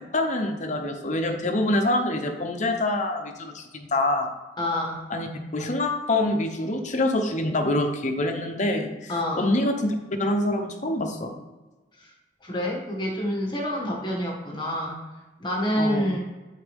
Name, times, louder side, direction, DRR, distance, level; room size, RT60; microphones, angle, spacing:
voice 1, 0.1-4.3 5.1-11.3 15.8-16.2, left 1 dB, 45° left, 5 dB, 0.9 m, -26 dB
voice 2, 4.6-5.0 9.1-9.5 12.0-12.1 12.4-15.0 15.4-16.2, left 1 dB, 25° left, -2 dB, 1.6 m, -27 dB
12.0 x 4.1 x 3.5 m, 1.2 s
head